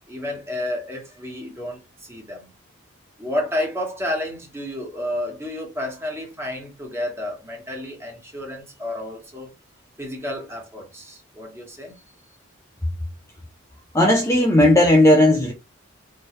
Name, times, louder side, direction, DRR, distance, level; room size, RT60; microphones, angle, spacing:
voice 1, 0.1-2.5 3.2-9.5 10.0-11.9, left 1 dB, 10° right, 1.6 m, -31 dB
voice 2, 13.9-15.5, left 1 dB, 15° left, 0.5 m, -15 dB
4.3 x 3.1 x 3.1 m
head